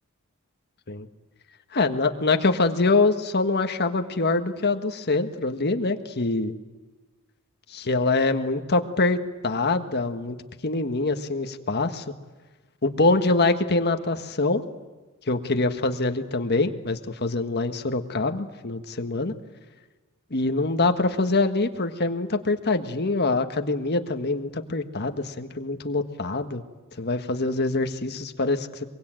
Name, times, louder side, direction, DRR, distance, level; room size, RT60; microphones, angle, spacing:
voice 1, 1.7-6.5 7.7-10.4 10.6-12.0 12.8-14.6 15.3-19.3 20.3-26.6 27.0-28.9, left 3 dB, 50° left, 7 dB, 1.6 m, -24 dB
23.5 x 23.0 x 9.1 m, 1.2 s
head